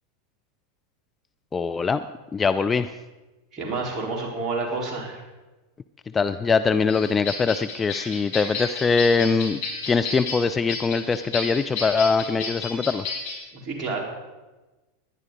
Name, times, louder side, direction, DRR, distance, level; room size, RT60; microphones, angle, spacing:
voice 1, 1.5-2.0 2.3-3.0 6.1-9.6 9.9-13.1, left 5 dB, 20° left, 10 dB, 0.5 m, -22 dB
voice 2, 3.5-5.2 13.5-14.0, right 3 dB, 25° right, -3 dB, 4.3 m, -29 dB
sound 1, 6.9-13.4, left 4 dB, 65° left, 5.1 m, -32 dB
18.5 x 11.0 x 4.0 m, 1.2 s
figure-of-eight pair, 90°, 0 cm